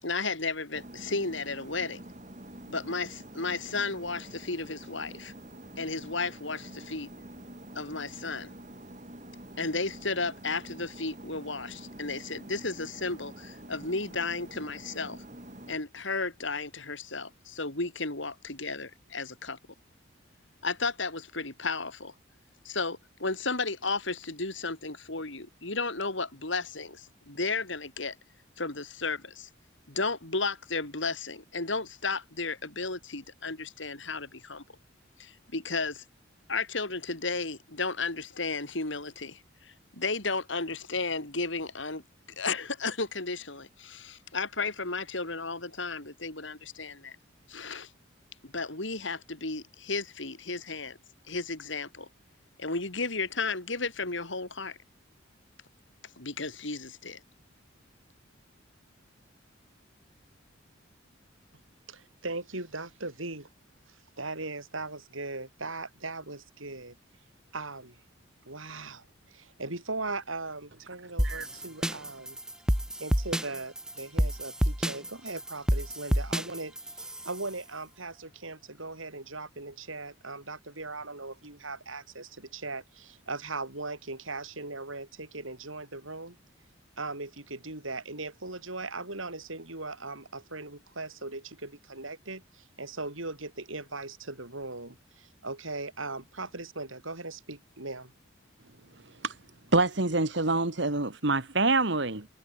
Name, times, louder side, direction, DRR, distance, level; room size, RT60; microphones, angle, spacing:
voice 1, 0.0-2.0 2.7-5.3 5.8-7.1 7.7-8.5 9.6-15.2 15.7-19.6 20.6-22.1 22.6-28.2 28.6-29.5 29.9-34.6 35.2-36.0 36.5-42.0 42.4-47.2 47.5-47.9 48.4-51.0 51.3-52.1 52.6-54.8 56.2-57.2, left 3 dB, 70° left, 3.9 m, -33 dB
sound 1, 0.7-15.8, right 1 dB, 35° right, 4.7 m, -47 dB
voice 2, 61.9-63.5 63.9-67.0 67.5-68.0 68.4-72.4 73.0-86.4 87.0-98.1, right 3 dB, 85° right, 7.6 m, -39 dB
sound 2, 71.2-77.5, equal, 5° right, 2.1 m, -29 dB
voice 3, 99.7-102.3, right 3 dB, 60° right, 2.0 m, -26 dB
head